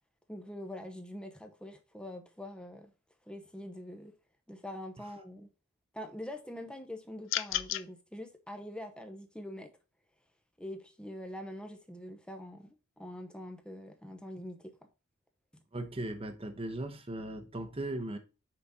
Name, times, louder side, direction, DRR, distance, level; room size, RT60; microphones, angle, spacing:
voice 1, 0.3-2.9 3.3-4.1 4.5-5.5 5.9-9.7 10.6-14.8, left 1 dB, 5° left, 0.8 m, -44 dB
sound 1, 7.3-7.9, left 13 dB, 60° left, 0.4 m, -32 dB
voice 2, 15.7-18.2, right 1 dB, 25° right, 0.9 m, -38 dB
5.8 x 5.1 x 4.0 m
head